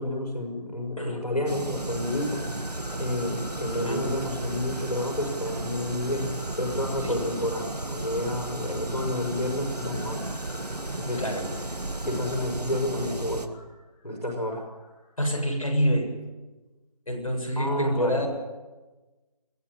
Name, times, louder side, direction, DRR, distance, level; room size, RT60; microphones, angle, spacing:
voice 1, 0.0-2.5 3.0-10.2 11.0-11.2 12.0-13.5 14.0-14.6 17.6-18.3, left 1 dB, 90° left, 1 dB, 6.1 m, -30 dB
sound 1, 1.5-13.5, right 2 dB, 80° right, 1.8 m, -34 dB
sound 2, 1.7-15.1, left 3 dB, 5° left, 1.2 m, -48 dB
voice 2, 3.7-4.1 7.0-7.3 11.2-11.4 15.2-16.1 17.1-18.3, equal, 60° left, 1 dB, 7.3 m, -27 dB
22.0 x 14.0 x 9.8 m, 1.2 s
figure-of-eight pair, 165°, 20 cm